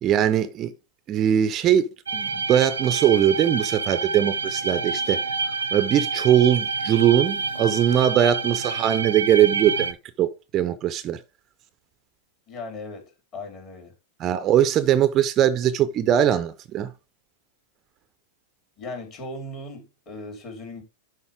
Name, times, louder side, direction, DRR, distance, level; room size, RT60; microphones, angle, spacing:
voice 1, 0.0-0.7 1.1-5.2 5.7-11.2 14.2-16.9, right 10 dB, 35° right, 0.6 m, -21 dB
sound 1, 2.1-9.9, right 4 dB, 80° right, 0.7 m, -28 dB
voice 2, 12.5-14.0 18.8-20.8, left 2 dB, 40° left, 3.9 m, -37 dB
11.0 x 4.1 x 3.7 m
hypercardioid pair, 100°, 0 cm